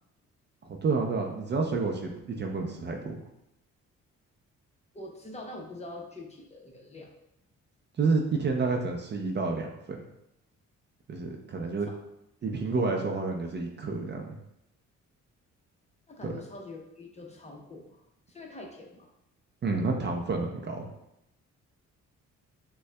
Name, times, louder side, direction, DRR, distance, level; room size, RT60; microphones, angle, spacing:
voice 1, 0.6-3.2 8.0-10.0 11.1-11.9 12.4-14.4 16.2-16.3 19.6-20.9, right 4 dB, 35° right, 2 dB, 0.5 m, -29 dB
voice 2, 4.9-7.1 11.9-12.0 12.7-12.8 16.1-18.0 18.3-19.1, left 2 dB, 20° left, 0 dB, 0.8 m, -44 dB
6.2 x 2.3 x 2.2 m, 0.82 s
cardioid pair, 90°, 30 cm